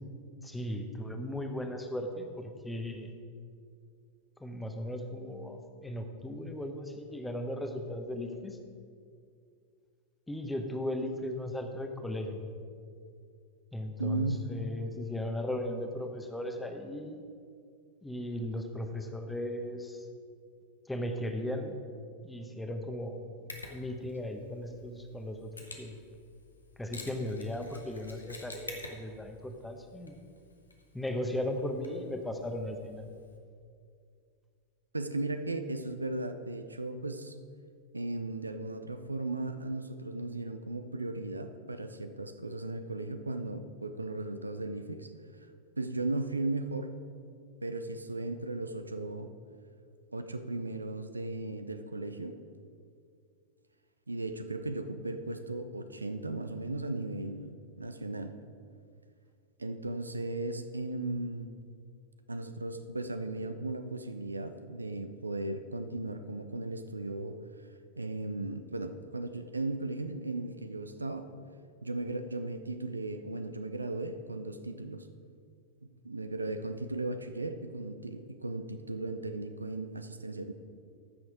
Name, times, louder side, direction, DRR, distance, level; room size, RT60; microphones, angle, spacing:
voice 1, 0.4-3.1 4.4-8.6 10.3-12.4 13.7-17.2 18.0-20.0 20.9-21.8 22.2-25.5 25.8-25.9 26.8-30.2 30.9-33.1, left 1 dB, 5° left, 5 dB, 1.0 m, -37 dB
voice 2, 14.0-14.4 34.9-37.4 37.9-45.1 45.8-46.9 47.6-49.3 50.1-52.4 54.1-58.4 59.6-61.5 62.3-67.4 68.0-71.3 71.8-75.1 76.0-80.5, right 2 dB, 80° right, 9 dB, 0.5 m, -36 dB
Mechanisms, 23.5-33.4, left 2 dB, 80° left, 1.1 m, -50 dB
14.0 x 6.2 x 5.0 m, 2.3 s
figure-of-eight pair, 90°, 0 cm